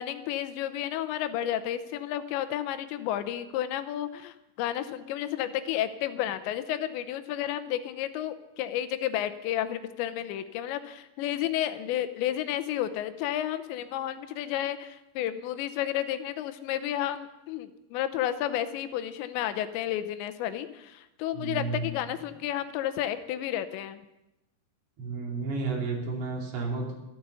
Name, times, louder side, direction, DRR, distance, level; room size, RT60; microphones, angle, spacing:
voice 1, 0.0-24.0, left 11 dB, 85° left, 11 dB, 3.1 m, -31 dB
voice 2, 21.3-22.0 25.0-26.9, right 3 dB, 85° right, -1 dB, 5.2 m, -32 dB
13.5 x 13.0 x 6.9 m, 0.94 s
omnidirectional pair, 5.1 m